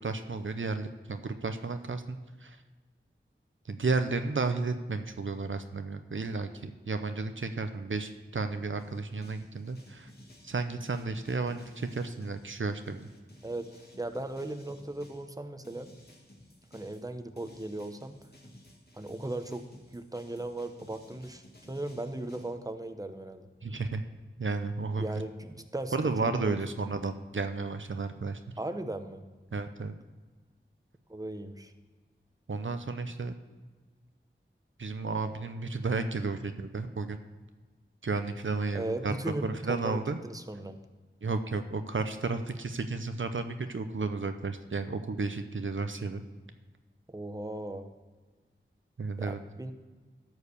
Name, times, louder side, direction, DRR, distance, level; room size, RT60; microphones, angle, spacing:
voice 1, 0.0-2.6 3.7-10.1 10.4-13.1 23.6-24.0 24.4-25.2 25.9-28.4 29.5-29.9 32.5-33.3 34.8-37.2 38.0-39.1 39.4-40.2 41.2-46.2 49.0-49.4, right 3 dB, 70° right, 8 dB, 0.6 m, -33 dB
sound 1, 8.8-15.3 15.6-22.5, left 1 dB, 50° left, 2.1 m, -55 dB
voice 2, 13.4-15.9 16.7-18.1 18.9-19.7 19.9-23.5 25.0-26.6 28.6-29.2 31.1-31.7 38.7-40.0 40.2-40.8 47.1-47.9 49.2-49.7, right 1 dB, 15° right, 8 dB, 0.8 m, -37 dB
13.0 x 4.8 x 6.8 m, 1.3 s
wide cardioid pair, 40°, 21 cm